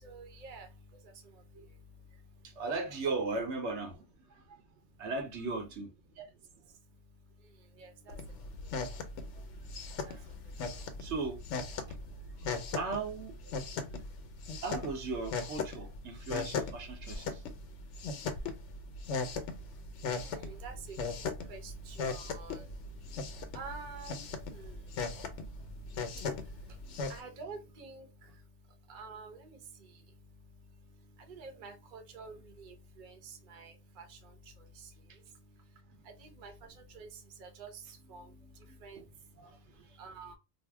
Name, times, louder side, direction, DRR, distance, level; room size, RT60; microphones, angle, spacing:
voice 1, 0.0-0.7 7.8-8.1 20.3-21.0 21.5-22.6 23.5-24.2 24.5-24.7 27.1-28.0 28.9-29.4 31.3-33.1 33.5-34.0 36.2-36.5 36.9-37.1 37.4-37.7 38.1-38.2 38.8-39.0 40.0-40.3, right 4 dB, 50° right, 0.7 m, -47 dB
voice 2, 2.4-4.0 4.3-4.6 5.0-5.9 9.3-9.4 10.0-10.3 11.0-11.4 12.8-14.0 14.6-17.4 20.4-20.5 21.4-21.5 22.6-22.7 26.9-27.0 38.2-39.1 39.3-39.6 39.9-40.0, right 3 dB, 75° right, 1.0 m, -38 dB
sound 1, 8.1-27.2, left 4 dB, 85° left, 1.0 m, -39 dB
2.6 x 2.0 x 3.2 m
omnidirectional pair, 1.2 m